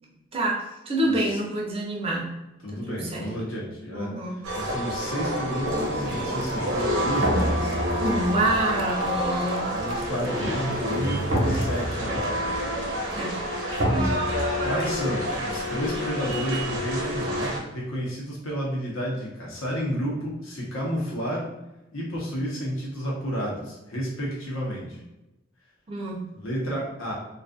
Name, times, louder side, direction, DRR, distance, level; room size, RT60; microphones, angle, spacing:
voice 1, 0.3-2.4 2.7-3.3 3.9-4.4 8.0-9.6 13.2-13.4 14.6-14.7 25.9-26.3, right 1 dB, 30° right, 0 dB, 0.4 m, -27 dB
voice 2, 1.0-1.4 2.6-4.1 4.6-7.8 9.7-12.4 14.6-21.5 21.9-25.0 26.4-27.1, equal, 85° left, -4 dB, 0.9 m, -31 dB
sound 1, 4.4-17.6, equal, 85° right, 0.8 m, -27 dB
sound 2, 5.7-12.1, left 3 dB, 60° left, 0.3 m, -38 dB
2.5 x 2.4 x 2.4 m, 0.95 s
head